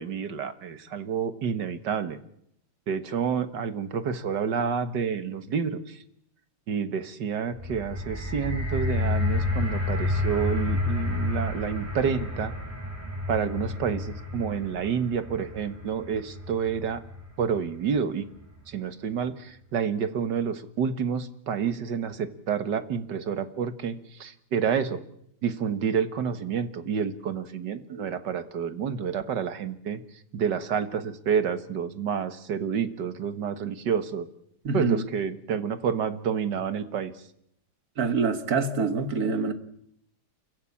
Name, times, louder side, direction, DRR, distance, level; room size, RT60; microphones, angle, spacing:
voice 1, 0.0-2.2 2.9-6.0 6.7-12.5 13.3-17.0 17.4-18.3 18.7-25.0 25.4-30.0 30.3-34.3 34.7-37.1, right 7 dB, 80° right, 2.0 m, -29 dB
sound 1, 7.5-17.8 18.5-18.6, left 2 dB, 10° right, 7.1 m, -30 dB
voice 2, 34.6-35.0 38.0-39.5, right 4 dB, 60° right, 2.0 m, -25 dB
29.0 x 15.0 x 8.6 m
omnidirectional pair, 1.8 m